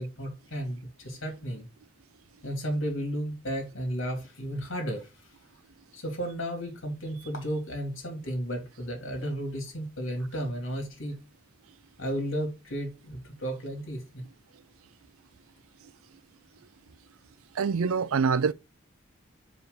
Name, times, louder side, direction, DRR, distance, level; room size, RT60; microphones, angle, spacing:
voice 1, 0.0-1.7 2.4-5.1 5.9-11.1 12.0-14.3, equal, 70° left, 2.8 m, -33 dB
voice 2, 17.6-18.5, right 5 dB, 85° right, 0.4 m, -25 dB
5.1 x 4.6 x 5.2 m
head